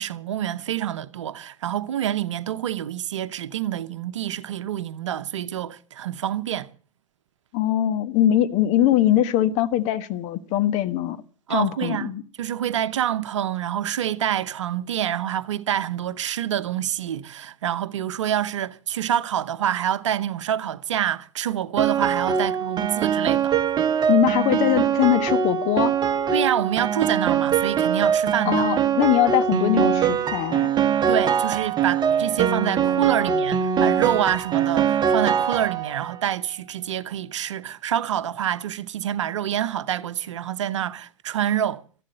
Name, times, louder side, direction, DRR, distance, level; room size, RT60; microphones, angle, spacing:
voice 1, 0.0-6.7 11.5-12.1 12.4-23.6 26.3-28.7 31.1-41.8, right 10 dB, 65° right, 0.9 m, -27 dB
voice 2, 7.5-11.2 11.5-12.2 24.1-25.9 28.4-30.7, left 12 dB, 40° left, 1.3 m, -21 dB
Piano, 21.8-36.2, right 7 dB, 25° right, 1.3 m, -22 dB
14.0 x 11.5 x 7.6 m
figure-of-eight pair, 90°, 17 cm